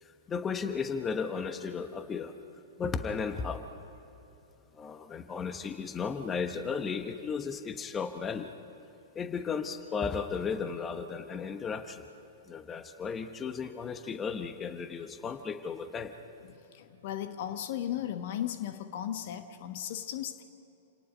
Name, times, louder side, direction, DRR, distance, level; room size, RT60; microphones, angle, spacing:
voice 1, 0.0-2.3 2.8-3.6 4.7-8.5 9.1-12.1 12.5-16.1, left 5 dB, 20° left, 9 dB, 1.1 m, -35 dB
voice 2, 16.5-20.4, left 11 dB, 50° left, 9 dB, 1.1 m, -36 dB
28.5 x 18.5 x 5.4 m, 3.0 s
figure-of-eight pair, 100°, 0 cm